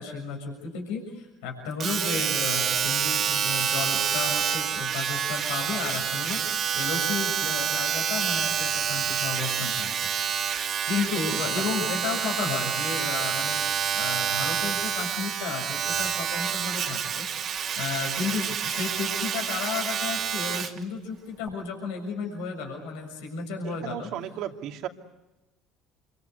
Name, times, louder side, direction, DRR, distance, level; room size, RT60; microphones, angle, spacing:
voice 1, 0.0-10.0 10.8-13.6 13.9-17.3 17.8-24.1, left 5 dB, 80° left, 3 dB, 6.7 m, -33 dB
Domestic sounds home sounds, 1.8-20.8 21.5-21.6, right 8 dB, 50° right, 2.7 m, -28 dB
voice 2, 23.6-24.9, right 11 dB, 65° right, 5 dB, 2.5 m, -35 dB
27.5 x 24.5 x 8.1 m, 1.0 s
supercardioid pair, 80°, 0 cm